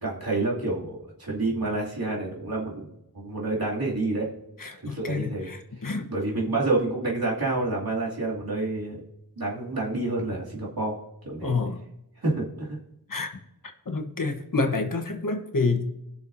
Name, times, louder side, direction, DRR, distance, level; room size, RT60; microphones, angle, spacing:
voice 1, 0.0-2.9 3.1-4.3 4.8-5.5 6.1-9.0 9.4-11.0 11.2-11.5 12.2-12.8, right 2 dB, 75° right, -5 dB, 2.8 m, -28 dB
voice 2, 4.6-6.1 11.4-11.8 13.1-13.3 13.9-15.8, left 3 dB, 60° left, 4 dB, 1.3 m, -28 dB
19.5 x 6.7 x 2.7 m, 0.86 s
wide cardioid pair, 50°, 37 cm